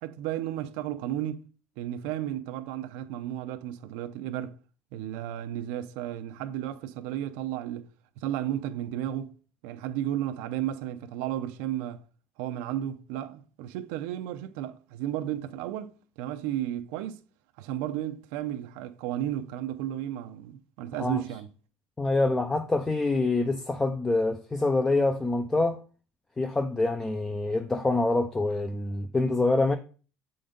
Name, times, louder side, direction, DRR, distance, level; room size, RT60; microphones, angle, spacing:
voice 1, 0.0-1.5 1.8-4.6 4.9-7.9 8.2-9.3 9.6-12.0 12.4-17.2 17.6-21.5, right 12 dB, 90° right, 0.6 m, -33 dB
voice 2, 22.0-25.8 26.4-29.8, left 2 dB, 10° left, 0.3 m, -26 dB
7.8 x 3.9 x 5.1 m
cardioid pair, 180°, 4 cm